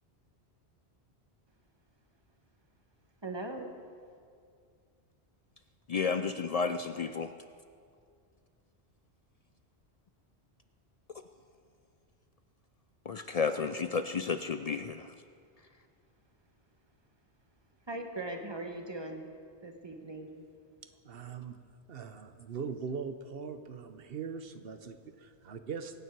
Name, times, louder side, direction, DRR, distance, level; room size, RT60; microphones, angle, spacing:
voice 1, 3.2-3.7 17.9-19.3 19.6-20.3, right 2 dB, 25° right, 4 dB, 1.2 m, -39 dB
voice 2, 5.9-7.3 13.1-15.1, left 5 dB, 60° left, 9 dB, 0.4 m, -32 dB
voice 3, 21.0-21.6 21.9-26.0, right 6 dB, 60° right, 9 dB, 1.0 m, -41 dB
24.0 x 9.3 x 4.7 m, 2.2 s
omnidirectional pair, 1.1 m